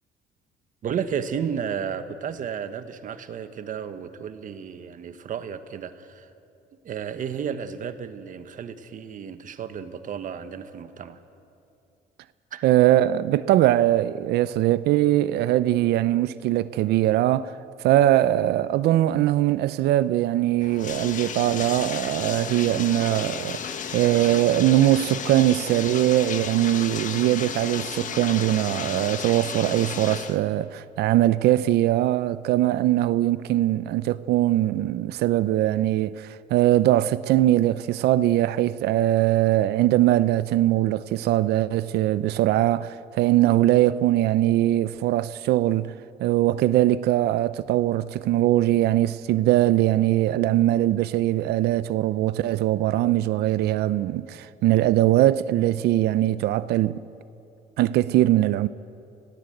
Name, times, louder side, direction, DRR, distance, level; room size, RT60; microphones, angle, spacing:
voice 1, 0.8-6.3 6.8-11.2 12.5-12.6, right 7 dB, 50° right, 1.3 m, -33 dB
voice 2, 12.6-17.5 17.8-23.6 23.9-45.9 46.2-57.0 57.8-58.7, right 14 dB, 75° right, 0.6 m, -21 dB
Bathtub (filling or washing), 20.6-30.4, left 7 dB, 50° left, 1.4 m, -33 dB
26.0 x 17.0 x 7.9 m
cardioid pair, 110°, 17 cm